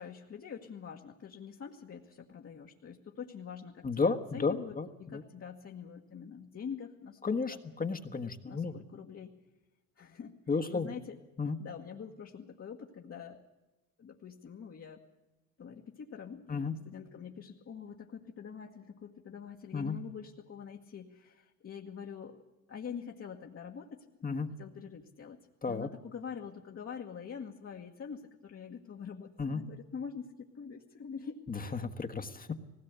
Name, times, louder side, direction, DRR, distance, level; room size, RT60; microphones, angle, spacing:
voice 1, 0.0-7.6 8.4-9.3 10.0-10.4 10.7-11.2 11.6-13.4 14.0-15.0 15.6-22.4 22.7-25.4 25.7-31.7, left 6 dB, 50° left, 0 dB, 1.6 m, -45 dB
voice 2, 3.8-5.2 7.2-8.8 10.5-10.9 11.4-11.6 16.5-16.7 19.7-20.0 24.2-24.5 25.6-25.9 29.4-29.6 31.5-32.5, left 4 dB, 30° left, 6 dB, 1.4 m, -33 dB
19.0 x 17.0 x 8.2 m, 1.1 s
cardioid pair, 90°, 30 cm